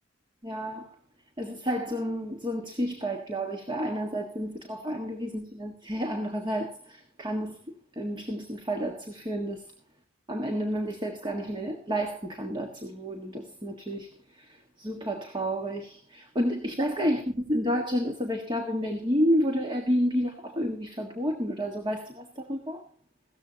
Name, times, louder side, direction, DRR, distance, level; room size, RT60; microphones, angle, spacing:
voice 1, 0.4-0.9 1.4-7.6 7.9-9.7 10.3-22.8, equal, 25° right, 1.6 m, -30 dB
17.0 x 14.0 x 2.9 m
head